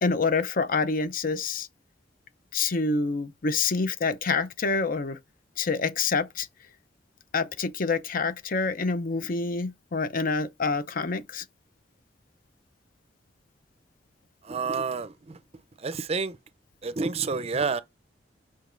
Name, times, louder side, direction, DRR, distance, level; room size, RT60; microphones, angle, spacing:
voice 1, 0.0-1.7 2.5-5.2 5.6-6.5 7.3-11.4, left 4 dB, 50° left, 0.6 m, -27 dB
voice 2, 14.4-15.4 15.8-16.4 16.8-17.8, right 4 dB, 35° right, 0.5 m, -29 dB
5.7 x 5.2 x 3.8 m
head